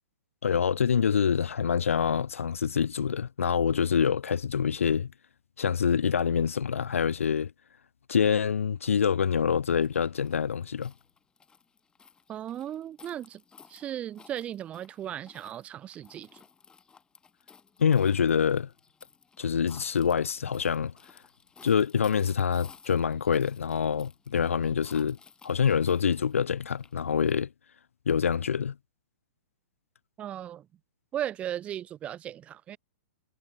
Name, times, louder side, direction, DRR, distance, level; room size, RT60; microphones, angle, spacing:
voice 1, 0.4-5.1 5.6-7.5 8.1-10.9 17.8-18.7 19.4-20.9 21.6-25.2 25.4-27.5 28.1-28.7, left 7 dB, 65° left, 0.5 m, -26 dB
sound 1, 9.7-27.3, left 5 dB, 10° left, 1.6 m, -55 dB
voice 2, 12.3-13.4 13.7-16.4 30.2-30.7 31.1-32.8, right 11 dB, 15° right, 0.4 m, -36 dB
figure-of-eight pair, 115°, 8 cm